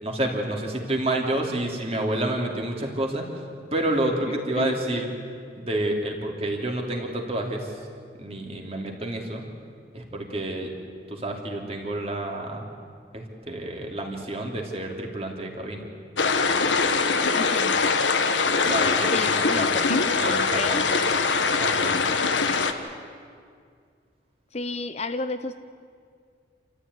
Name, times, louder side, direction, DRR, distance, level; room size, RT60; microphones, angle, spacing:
voice 1, 0.0-3.3 3.7-5.1 5.5-7.7 8.1-9.4 9.9-10.7 11.1-12.6 13.1-15.8 18.6-19.7 20.2-20.9 21.6-22.0, right 1 dB, 35° right, 1 dB, 3.0 m, -29 dB
voice 2, 4.6-5.0 17.3-17.8 19.1-20.9 24.5-25.5, left 3 dB, 35° left, 10 dB, 0.7 m, -31 dB
sound 1, 16.2-22.7, left 4 dB, 85° left, 1.5 m, -22 dB
27.5 x 14.5 x 9.6 m, 2.2 s
head